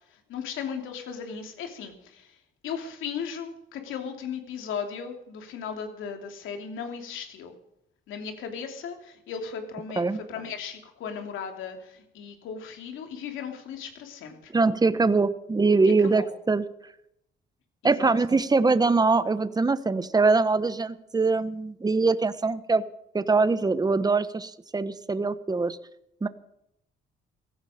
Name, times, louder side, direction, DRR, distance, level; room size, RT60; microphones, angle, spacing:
voice 1, 0.1-2.4 2.6-7.5 8.1-14.5 15.8-16.3 17.8-18.1, left 6 dB, 85° left, 4 dB, 3.0 m, -36 dB
voice 2, 14.5-16.6 17.8-22.8 23.1-25.8 26.2-26.3, right 3 dB, 20° right, 13 dB, 1.1 m, -23 dB
16.5 x 15.0 x 5.1 m, 0.78 s
cardioid pair, 90°, 20 cm